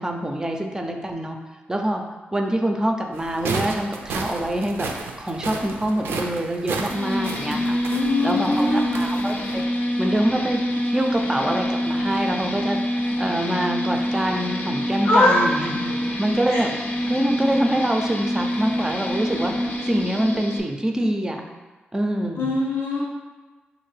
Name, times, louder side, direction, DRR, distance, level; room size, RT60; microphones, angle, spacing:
voice 1, 0.0-1.4 1.7-2.0 2.3-7.8 8.2-9.6 10.0-21.4 21.9-22.6, right 1 dB, 15° right, 3 dB, 0.4 m, -25 dB
sound 1, 3.1-9.6, right 4 dB, 85° right, 0.3 m, -33 dB
sound 2, 6.9-20.6, equal, 45° left, 0.5 m, -26 dB
voice 2, 7.8-9.0 15.0-15.4 16.5-16.6 22.4-23.0, left 2 dB, 85° left, -4 dB, 0.8 m, -21 dB
3.4 x 2.5 x 3.2 m, 1.3 s
cardioid pair, 75°, 4 cm